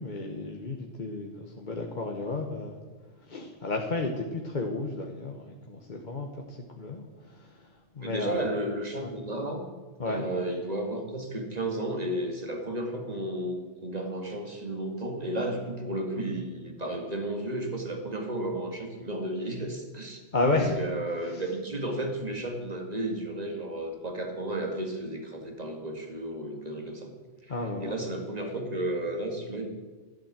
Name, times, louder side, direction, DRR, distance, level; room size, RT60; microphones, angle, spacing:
voice 1, 0.0-2.8 3.3-7.7 7.9-8.4 9.0-9.1 10.0-10.3 20.3-20.8 21.3-21.4 27.5-28.0, left 2 dB, 40° left, 1 dB, 1.3 m, -32 dB
voice 2, 8.0-9.6 10.0-20.2 20.5-27.1 27.4-27.5 27.8-29.7, right 1 dB, 35° right, 3 dB, 2.2 m, -33 dB
12.5 x 12.0 x 7.4 m, 1.3 s
omnidirectional pair, 1.3 m